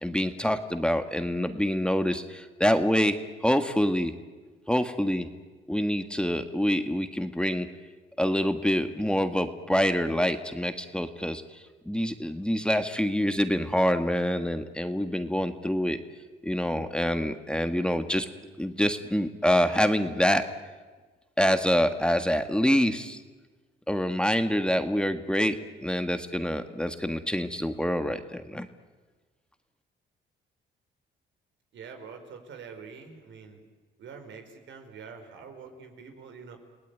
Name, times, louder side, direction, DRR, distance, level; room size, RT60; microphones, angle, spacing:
voice 1, 0.0-3.1 3.4-4.1 4.7-5.3 5.7-7.7 8.2-16.0 16.4-18.3 18.6-20.4 21.4-23.2 23.9-28.7, equal, 5° left, 8 dB, 1.6 m, -26 dB
voice 2, 31.7-33.6 34.0-36.6, right 5 dB, 70° right, 6 dB, 4.7 m, -45 dB
29.5 x 18.5 x 9.4 m, 1.3 s
cardioid pair, 90°, 20 cm